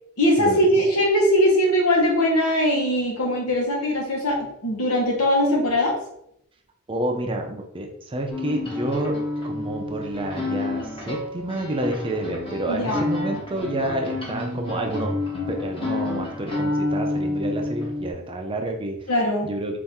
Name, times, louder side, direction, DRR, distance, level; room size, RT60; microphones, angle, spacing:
voice 1, 0.2-6.0 12.7-13.0 19.1-19.5, equal, 85° left, -1 dB, 1.2 m, -21 dB
voice 2, 6.9-9.2 9.4-15.2 15.5-19.0 19.4-19.8, right 1 dB, 25° right, 2 dB, 0.5 m, -29 dB
sound 1, 8.3-18.1, left 2 dB, 25° left, 0.9 m, -29 dB
4.2 x 2.6 x 3.6 m, 0.76 s
head